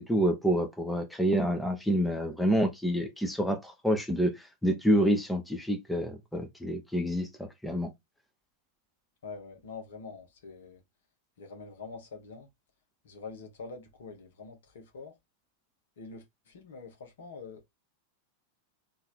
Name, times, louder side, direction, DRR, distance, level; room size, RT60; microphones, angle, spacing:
voice 1, 0.0-7.9, equal, 5° left, 0.8 m, -28 dB
voice 2, 9.2-10.8 11.4-12.5 13.0-15.1 16.0-17.6, left 4 dB, 60° left, 1.4 m, -45 dB
3.8 x 2.8 x 4.5 m
figure-of-eight pair, 90°, 0 cm